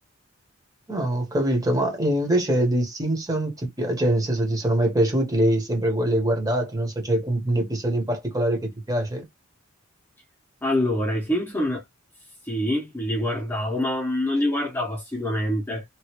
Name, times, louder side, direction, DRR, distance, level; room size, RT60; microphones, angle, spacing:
voice 1, 0.9-9.2, right 1 dB, 20° right, 1.1 m, -23 dB
voice 2, 10.6-11.8 12.5-15.8, left 1 dB, 10° left, 0.9 m, -25 dB
3.0 x 2.6 x 2.9 m
head